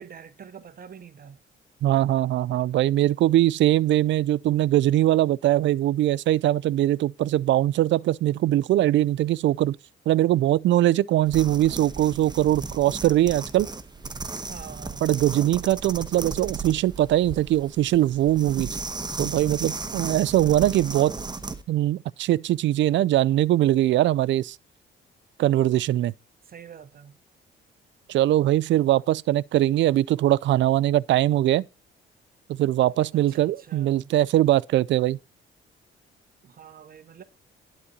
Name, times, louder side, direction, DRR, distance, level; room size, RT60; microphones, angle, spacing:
voice 1, 0.0-1.4 14.4-15.1 26.5-27.2 33.1-34.1 36.4-37.2, right 7 dB, 50° right, 0.8 m, -45 dB
voice 2, 1.8-9.8 10.1-13.7 15.0-18.7 19.2-21.2 21.7-24.6 25.4-26.1 28.1-31.6 32.5-35.2, right 14 dB, 70° right, 0.4 m, -21 dB
sound 1, 11.3-21.6, right 3 dB, 20° right, 1.1 m, -35 dB
11.5 x 4.2 x 7.9 m
cardioid pair, 90°, 20 cm